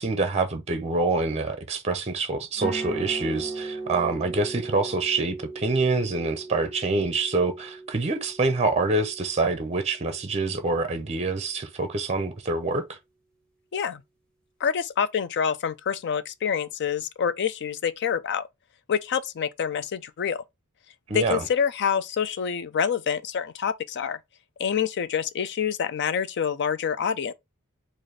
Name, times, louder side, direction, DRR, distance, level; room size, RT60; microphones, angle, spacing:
voice 1, 0.0-12.8 21.1-21.5, right 3 dB, 30° right, 0.6 m, -26 dB
sound 1, 2.5-10.6, right 3 dB, 5° left, 1.0 m, -37 dB
voice 2, 14.6-18.5 18.9-20.4 21.1-24.2 24.6-27.3, left 7 dB, 55° left, 0.4 m, -27 dB
4.0 x 2.5 x 3.2 m
head